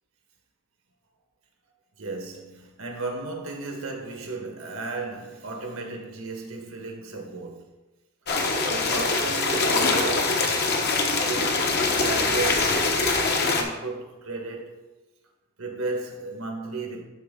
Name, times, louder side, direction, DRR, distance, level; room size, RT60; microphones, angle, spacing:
voice 1, 2.0-7.7 8.7-10.9 11.2-13.1 13.5-14.9 15.6-17.0, right 3 dB, 85° right, 1.5 m, -34 dB
sound 1, 8.3-13.6, left 3 dB, 50° left, 1.1 m, -23 dB
11.5 x 4.4 x 3.7 m
head